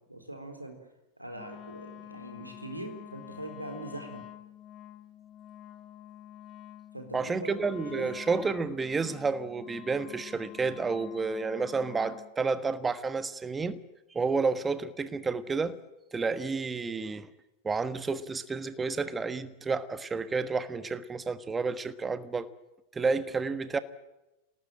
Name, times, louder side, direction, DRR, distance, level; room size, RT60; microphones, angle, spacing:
voice 1, 0.1-0.8 1.2-4.2 6.9-7.7 7.9-8.1, right 1 dB, 85° right, 4.0 m, -41 dB
Wind instrument woodwind instrument, 1.3-12.3, left 12 dB, 35° left, 1.6 m, -48 dB
voice 2, 7.1-13.8 14.1-15.8 16.1-17.3 17.6-22.5 22.9-23.8, right 4 dB, 15° right, 1.4 m, -30 dB
27.0 x 18.5 x 8.9 m
figure-of-eight pair, 90°, 0 cm